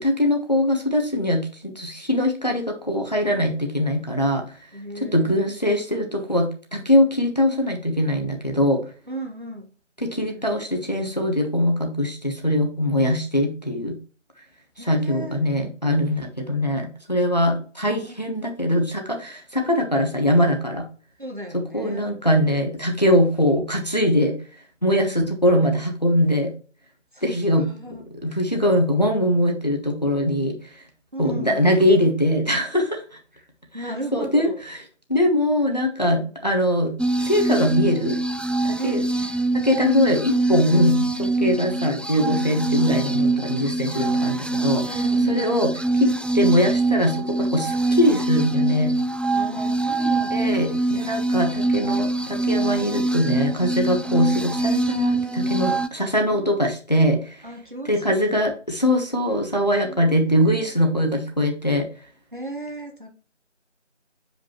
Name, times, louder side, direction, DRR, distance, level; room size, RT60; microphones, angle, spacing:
voice 1, 0.0-4.4 5.1-8.8 10.0-14.0 14.8-20.9 21.5-24.4 24.8-26.5 27.2-27.7 28.2-30.6 31.2-33.0 34.1-34.8 35.1-38.2 38.6-39.0 39.6-44.9 45.3-48.9 50.3-57.4 57.9-61.9, left 1 dB, 35° left, 2 dB, 1.2 m, -22 dB
voice 2, 4.7-5.5 9.1-9.7 10.2-10.9 14.8-15.4 17.9-18.2 21.2-22.0 27.1-27.3 27.6-28.4 31.1-31.7 33.3-33.5 33.7-34.6 36.1-36.3 38.7-39.1 41.4-41.7 44.8-45.6 49.3-50.8 56.3-56.7 57.4-58.4 59.8-60.6 62.3-63.1, right 1 dB, 40° right, 2 dB, 1.3 m, -36 dB
sound 1, 37.0-55.9, right 2 dB, 5° left, 0.3 m, -24 dB
7.8 x 5.2 x 3.0 m, 0.38 s
figure-of-eight pair, 175°, 37 cm